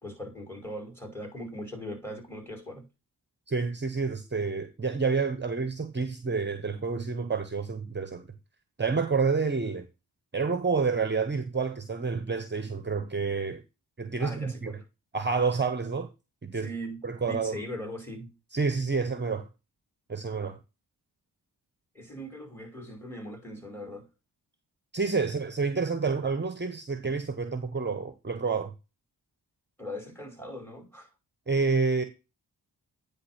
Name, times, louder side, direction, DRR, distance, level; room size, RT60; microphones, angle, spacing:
voice 1, 0.0-2.8 14.2-14.8 16.5-18.3 21.9-24.1 29.8-31.1, equal, 5° left, 5.2 m, -40 dB
voice 2, 3.5-8.3 8.8-9.8 10.3-13.6 14.0-14.8 15.1-16.1 16.4-16.7 17.0-17.6 18.5-19.5 20.1-20.6 24.9-28.7 31.5-32.0, right 4 dB, 25° right, 1.0 m, -29 dB
9.7 x 3.6 x 5.8 m
cardioid pair, 50°, 41 cm